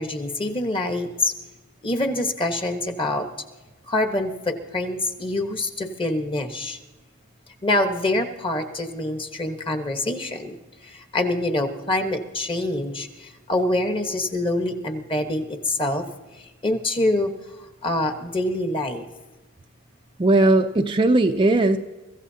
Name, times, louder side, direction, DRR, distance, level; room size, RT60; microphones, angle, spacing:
voice 1, 0.0-1.3 1.8-3.3 3.9-6.8 7.6-10.6 10.8-16.0 16.6-17.3 17.8-19.1, left 1 dB, 25° left, 5 dB, 1.2 m, -25 dB
voice 2, 20.2-21.8, right 2 dB, 20° right, 5 dB, 0.5 m, -18 dB
24.5 x 15.5 x 2.8 m, 1.2 s
head